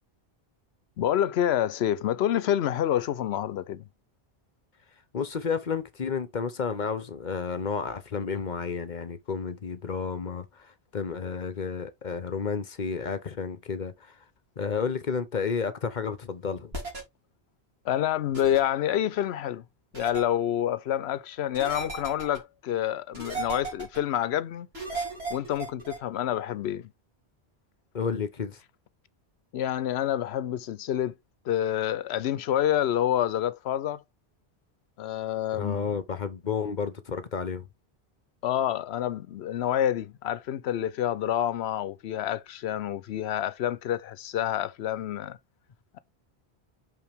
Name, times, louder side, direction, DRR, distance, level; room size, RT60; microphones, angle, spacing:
voice 1, 1.0-3.9 17.8-19.6 19.9-24.7 25.3-26.9 29.5-31.1 31.4-34.0 35.0-35.9 38.4-45.4, left 11 dB, 80° left, 0.9 m, -28 dB
voice 2, 5.1-14.2 14.6-16.7 27.9-28.6 35.5-37.7, left 5 dB, 50° left, 1.0 m, -31 dB
sound 1, 16.7-17.0 18.3-18.6 19.9-20.2 21.5-22.4 23.1-24.0 24.7-26.0, right 3 dB, 70° right, 3.4 m, -35 dB
5.7 x 5.6 x 3.5 m
omnidirectional pair, 1.1 m